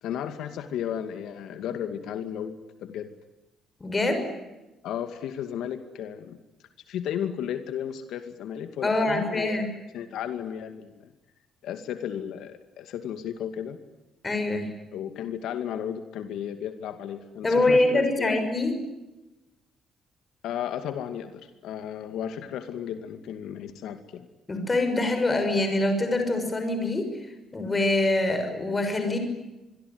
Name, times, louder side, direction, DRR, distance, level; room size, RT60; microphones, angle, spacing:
voice 1, 0.0-3.1 4.8-6.4 6.9-9.7 9.9-11.1 11.6-13.8 14.9-18.5 20.4-24.3, left 9 dB, 80° left, 8 dB, 2.3 m, -34 dB
voice 2, 3.8-4.3 8.8-9.7 14.2-14.7 17.4-18.8 24.5-27.1 27.5-29.2, left 2 dB, 20° left, 7 dB, 6.2 m, -24 dB
26.5 x 23.0 x 9.6 m, 1.0 s
cardioid pair, 160°, 0 cm